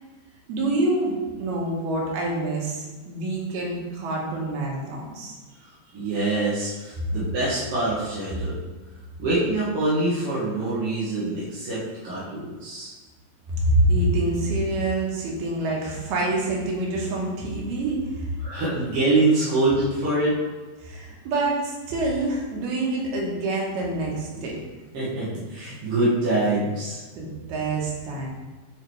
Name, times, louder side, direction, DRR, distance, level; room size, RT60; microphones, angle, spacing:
voice 1, 0.5-5.4 7.0-7.1 13.5-18.3 20.8-24.6 27.1-28.3, right 2 dB, 90° right, -3 dB, 3.2 m, -26 dB
voice 2, 5.9-8.6 9.2-12.9 18.4-20.4 24.3-24.5 24.9-27.0, right 2 dB, 55° right, -9 dB, 1.6 m, -25 dB
9.1 x 3.9 x 3.2 m, 1.3 s
omnidirectional pair, 4.3 m